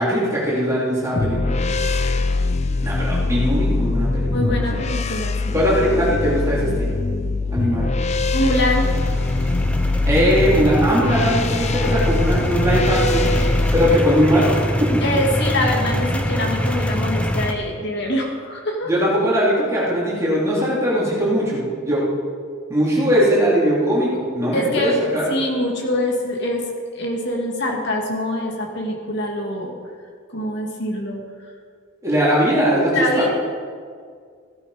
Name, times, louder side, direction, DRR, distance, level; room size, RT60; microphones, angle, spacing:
voice 1, 0.0-1.9 2.8-4.9 5.5-7.0 7.5-7.9 10.0-13.3 13.7-15.1 18.8-22.0 22.7-25.3 32.0-33.3, equal, 15° right, -7 dB, 3.6 m, -20 dB
sound 1, 1.1-14.0, left 2 dB, 30° left, 0.5 m, -22 dB
voice 2, 4.3-5.6 8.3-8.9 15.0-18.9 24.5-25.0 25.3-26.7 26.9-29.7 30.3-31.2 32.9-33.3, left 1 dB, 55° left, 0 dB, 2.2 m, -24 dB
sound 2, 8.5-17.5, equal, 5° left, 0.8 m, -24 dB
15.5 x 12.0 x 5.1 m, 2.1 s
head